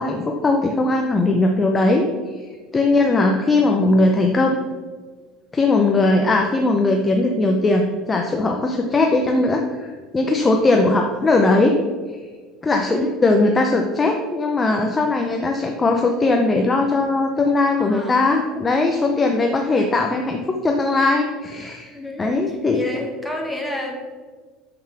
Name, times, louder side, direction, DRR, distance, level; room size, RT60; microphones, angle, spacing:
voice 1, 0.0-2.0 2.4-4.6 5.5-11.7 12.6-23.0, left 2 dB, 15° left, 2 dB, 0.7 m, -19 dB
voice 2, 2.8-3.2 12.8-13.1 17.8-18.3 19.3-19.9 21.9-23.9, left 1 dB, ahead, -1 dB, 1.6 m, -32 dB
6.9 x 6.8 x 6.0 m, 1.5 s
cardioid pair, 150°, 0 cm